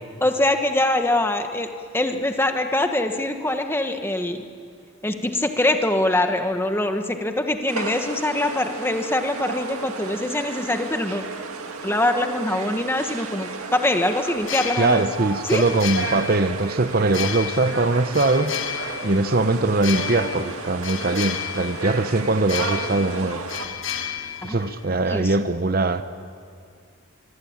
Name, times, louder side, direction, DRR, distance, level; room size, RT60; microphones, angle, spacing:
voice 1, 0.2-4.4 5.0-11.2 11.8-15.0 15.4-15.6 24.4-24.7 25.1-25.3, left 1 dB, 10° left, 6 dB, 1.2 m, -23 dB
sound 1, 7.7-23.7, right 4 dB, 90° right, 2.0 m, -33 dB
sound 2, 14.4-25.2, left 9 dB, 60° left, 1.1 m, -33 dB
voice 2, 14.8-18.6 19.0-23.4 24.4-26.0, right 2 dB, 45° right, 11 dB, 0.8 m, -21 dB
24.5 x 24.0 x 8.7 m, 2.2 s
head